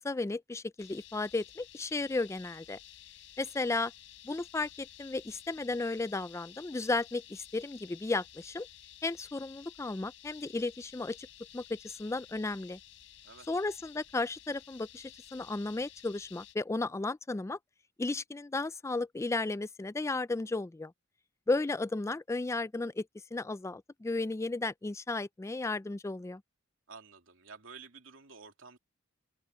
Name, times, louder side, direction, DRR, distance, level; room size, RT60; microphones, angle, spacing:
voice 1, 0.0-2.8 3.4-3.9 4.2-8.7 9.0-11.3 11.5-12.8 13.5-17.6 18.0-20.9 21.5-26.4, left 3 dB, 15° left, 0.3 m, -34 dB
sound 1, 0.8-16.6, left 12 dB, 75° left, 5.0 m, -54 dB
voice 2, 26.9-28.8, right 5 dB, 85° right, 2.9 m, -51 dB
head